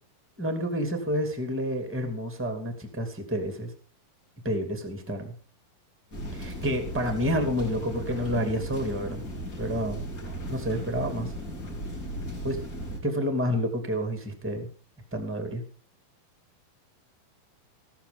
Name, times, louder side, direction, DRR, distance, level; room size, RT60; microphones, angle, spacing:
voice 1, 0.4-3.7 4.4-5.3 6.3-9.2 9.6-10.0 10.5-11.3 12.4-12.6 13.0-14.7 15.1-15.6, equal, 5° right, 6 dB, 1.7 m, -29 dB
sound 1, 6.1-13.0, equal, 25° left, 2.7 m, -36 dB
15.0 x 13.0 x 3.8 m, 0.41 s
omnidirectional pair, 4.3 m